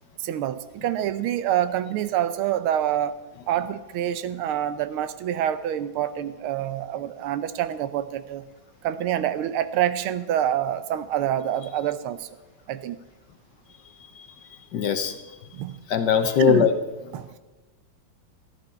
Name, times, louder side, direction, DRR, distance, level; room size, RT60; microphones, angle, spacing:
voice 1, 0.2-3.2 3.5-8.4 8.8-12.3 12.7-13.0 15.5-15.8 16.4-16.7 17.1-17.3, right 11 dB, 90° right, 13 dB, 1.6 m, -26 dB
voice 2, 14.7-15.1 15.9-16.7, left 7 dB, 65° left, 9 dB, 1.3 m, -20 dB
13.0 x 11.0 x 5.6 m, 1.2 s
omnidirectional pair, 2.3 m